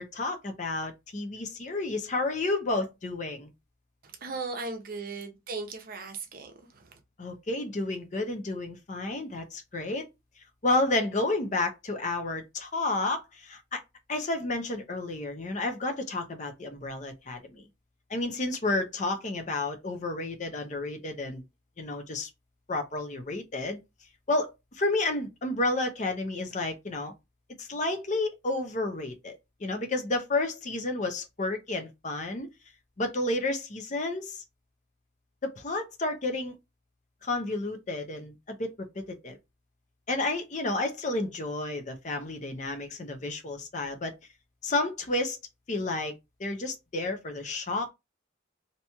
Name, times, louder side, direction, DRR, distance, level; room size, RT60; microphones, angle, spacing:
voice 1, 0.0-3.5 7.2-10.1 10.6-13.8 14.1-17.7 18.1-21.4 21.8-22.3 22.7-23.8 24.3-27.1 27.6-32.5 33.0-34.4 35.4-36.5 37.2-39.4 40.1-44.1 44.6-45.4 45.7-46.1 46.4-47.9, left 2 dB, 35° left, 0.5 m, -31 dB
voice 2, 4.0-7.0, right 3 dB, 45° right, 0.6 m, -38 dB
2.9 x 2.7 x 2.2 m
head